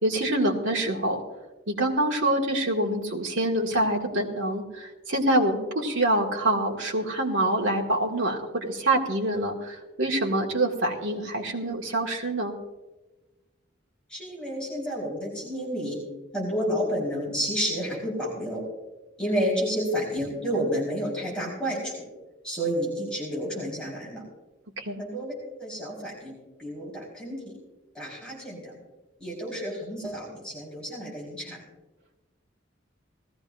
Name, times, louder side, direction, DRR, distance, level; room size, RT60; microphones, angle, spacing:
voice 1, 0.0-1.2 1.7-12.5 24.8-25.0, right 1 dB, 75° right, -1 dB, 2.0 m, -26 dB
voice 2, 14.1-16.0 16.3-18.6 19.2-21.9 22.4-24.2 25.0-25.3 25.6-26.3 26.6-27.5 27.9-28.7 29.2-31.6, equal, 5° left, -5 dB, 4.4 m, -30 dB
19.0 x 14.5 x 2.6 m, 1.1 s
head